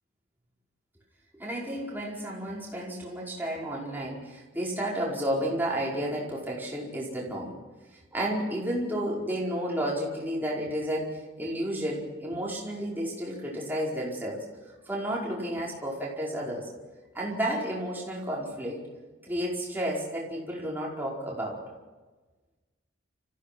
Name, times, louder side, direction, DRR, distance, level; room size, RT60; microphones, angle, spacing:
voice 1, 1.4-7.5 8.1-14.4 14.8-16.7 17.1-18.8 19.2-21.6, right 1 dB, 10° right, -4 dB, 5.0 m, -32 dB
29.5 x 15.5 x 6.0 m, 1.2 s
head